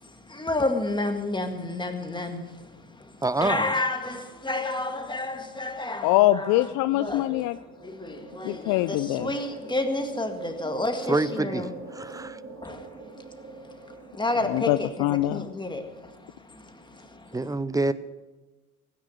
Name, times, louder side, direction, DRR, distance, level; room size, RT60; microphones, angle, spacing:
voice 1, 0.4-2.4 3.4-4.2 4.5-6.0 6.3-6.5 7.0-7.2 8.9-11.6 14.2-14.9 15.3-15.8, left 2 dB, 10° left, 1.9 m, -29 dB
voice 2, 3.2-3.7 11.1-11.7 11.9-12.4 17.3-17.9, right 2 dB, 10° right, 0.6 m, -26 dB
voice 3, 6.0-7.6 8.4-9.3 14.5-15.5, left 16 dB, 55° left, 0.5 m, -23 dB
sound 1, 7.4-15.0, right 3 dB, 30° right, 3.1 m, -42 dB
16.5 x 10.0 x 6.4 m
hypercardioid pair, 65°, 42 cm